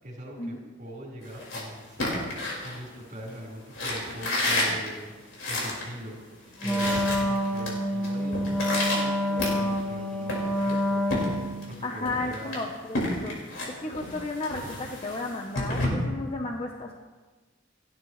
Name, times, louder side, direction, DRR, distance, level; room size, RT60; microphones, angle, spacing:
voice 1, 0.0-2.3 2.6-5.1 5.5-6.2 6.6-11.3 11.6-12.5, right 1 dB, 45° right, -2 dB, 4.8 m, -41 dB
sound 1, 1.2-3.3 3.7-5.9 6.2-6.3 6.5-7.7 8.0-9.9 10.3-11.7 12.0-15.9, left 1 dB, 70° left, 5.0 m, -31 dB
Wind instrument woodwind instrument, 6.6-11.7, equal, 5° left, 1.8 m, -27 dB
voice 2, 11.8-16.9, left 2 dB, 30° left, 2 dB, 1.0 m, -34 dB
30.0 x 11.5 x 3.3 m, 1.3 s
head